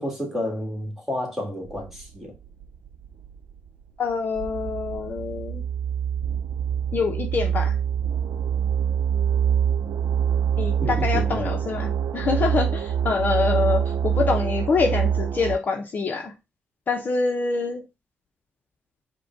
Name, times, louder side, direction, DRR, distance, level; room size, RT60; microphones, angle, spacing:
voice 1, 0.0-2.3 10.8-11.6, left 1 dB, 5° right, 1.7 m, -30 dB
sound 1, 1.7-15.6, right 8 dB, 75° right, 0.5 m, -25 dB
voice 2, 4.0-5.6 6.9-7.8 10.6-16.3 16.9-17.8, left 4 dB, 45° left, 0.7 m, -25 dB
5.1 x 2.2 x 4.5 m
cardioid pair, 125°, 4 cm